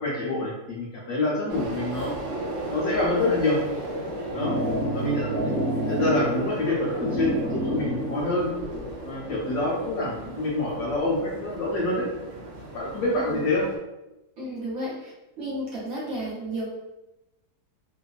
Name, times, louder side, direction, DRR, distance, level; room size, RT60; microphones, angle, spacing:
voice 1, 0.0-2.1 2.7-3.6 4.3-4.5 4.9-5.5 5.9-8.5 9.0-12.1 12.7-13.6, left 2 dB, 70° left, -3 dB, 0.9 m, -26 dB
sound 1, 1.5-13.8, right 1 dB, 90° right, 0.6 m, -36 dB
sound 2, 3.9-8.9, equal, 45° right, 0.8 m, -29 dB
voice 2, 13.1-13.5 14.4-15.1 15.4-16.6, right 1 dB, 60° right, -6 dB, 1.1 m, -32 dB
2.8 x 2.2 x 2.3 m, 0.97 s
omnidirectional pair, 1.9 m